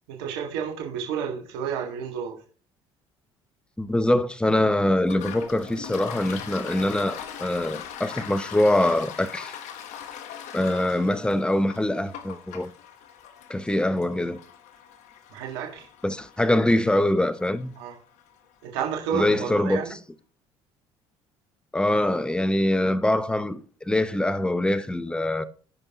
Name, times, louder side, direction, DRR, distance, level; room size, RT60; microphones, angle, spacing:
voice 1, 0.1-2.4 15.3-15.9 17.8-18.0 18.6-19.9, right 7 dB, 85° right, 1.8 m, -31 dB
voice 2, 3.8-9.5 10.5-12.7 13.5-14.4 16.0-17.7 19.1-19.9 21.7-25.4, left 1 dB, 5° left, 0.7 m, -24 dB
Toilet flush, 5.0-18.4, left 9 dB, 70° left, 1.1 m, -41 dB
15.5 x 5.3 x 2.9 m
hypercardioid pair, 70°, 12 cm